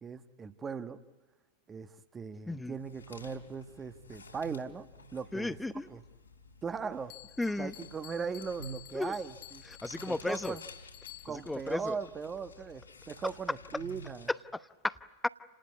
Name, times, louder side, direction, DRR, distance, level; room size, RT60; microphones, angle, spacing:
voice 1, 0.0-1.0 1.7-4.9 5.1-5.6 5.9-6.0 6.6-7.1 7.6-9.6 10.1-10.6 11.2-14.3, right 5 dB, 20° right, 11 dB, 1.3 m, -39 dB
sound 1, 2.5-14.3, equal, 75° left, 3.6 m, -51 dB
voice 2, 5.3-5.9 7.4-7.7 8.9-9.2 9.6-10.6 11.3-12.0 14.3-15.3, left 2 dB, 5° left, 14 dB, 0.9 m, -34 dB
Bell, 7.1-11.6, left 20 dB, 40° left, 0.9 m, -52 dB
29.0 x 19.5 x 9.5 m, 1.3 s
figure-of-eight pair, 90°, 0 cm